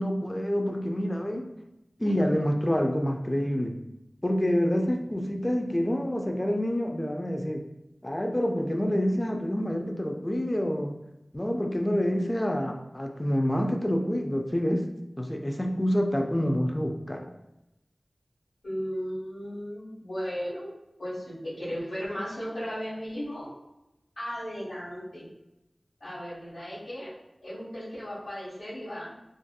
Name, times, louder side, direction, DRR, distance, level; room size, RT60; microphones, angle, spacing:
voice 1, 0.0-1.5 2.0-3.8 4.2-7.6 8.0-11.0 11.3-14.9 15.2-17.3, equal, 25° left, 3 dB, 0.3 m, -27 dB
voice 2, 18.6-20.7 21.0-23.5 24.1-25.3 26.0-27.1 27.4-29.1, equal, 90° left, -9 dB, 1.4 m, -35 dB
2.6 x 2.4 x 2.2 m, 0.91 s
wide cardioid pair, 55°, 0 cm